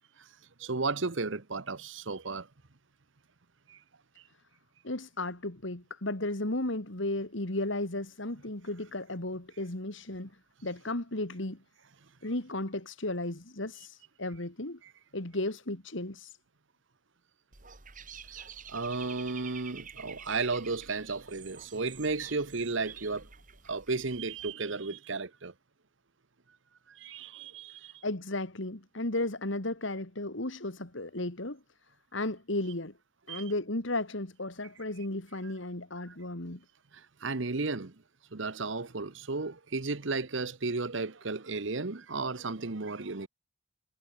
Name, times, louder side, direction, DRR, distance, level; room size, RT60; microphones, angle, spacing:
voice 1, 0.6-2.5 3.7-3.8 18.7-23.3 23.7-25.5 27.0-27.9 33.3-33.4 37.2-37.9 38.3-43.3, right 3 dB, 60° right, 1.1 m, -34 dB
voice 2, 4.8-10.3 10.6-11.6 12.2-14.8 15.1-16.4 28.0-31.6 32.1-32.9 33.3-36.6, left 2 dB, 60° left, 2.4 m, -34 dB
Dog / Bird, 17.5-24.5, right 7 dB, 40° right, 2.6 m, -49 dB
head